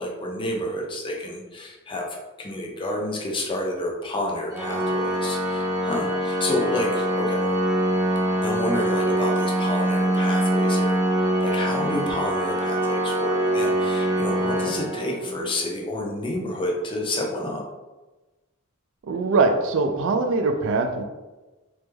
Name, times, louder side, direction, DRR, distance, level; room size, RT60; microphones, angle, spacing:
voice 1, 0.0-7.4 8.4-17.6, left 1 dB, 25° left, -1 dB, 0.5 m, -30 dB
Organ, 4.5-15.5, right 1 dB, 15° right, 0.8 m, -24 dB
voice 2, 19.0-21.0, right 3 dB, 65° right, 5 dB, 0.4 m, -22 dB
3.3 x 2.0 x 3.3 m, 1.1 s
head